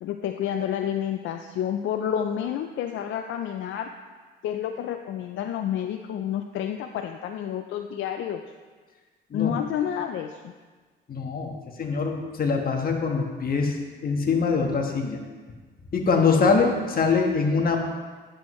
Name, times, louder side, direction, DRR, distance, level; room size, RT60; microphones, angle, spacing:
voice 1, 0.0-3.9 4.4-8.4 9.3-10.5, left 9 dB, 75° left, 6 dB, 0.4 m, -29 dB
voice 2, 11.1-13.8 14.0-15.2 15.9-17.8, left 4 dB, 45° left, 2 dB, 1.3 m, -23 dB
10.5 x 7.7 x 3.1 m, 1.4 s
cardioid pair, 90°, 20 cm